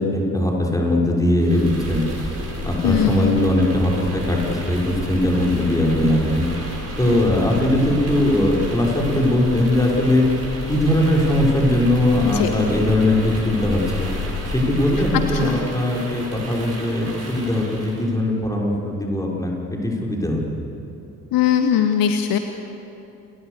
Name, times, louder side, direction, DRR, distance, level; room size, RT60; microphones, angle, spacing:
voice 1, 0.0-2.0 2.6-6.5 7.0-10.2 10.7-14.1 14.5-20.6, left 1 dB, 10° left, -2 dB, 6.1 m, -20 dB
sound 1, 1.4-18.1, left 1 dB, 35° right, 7.3 m, -31 dB
voice 2, 2.8-3.3 12.3-12.5 15.1-15.6 21.3-22.4, left 9 dB, 55° left, 7 dB, 1.2 m, -20 dB
29.0 x 22.0 x 6.8 m, 2.9 s
figure-of-eight pair, 40°, 41 cm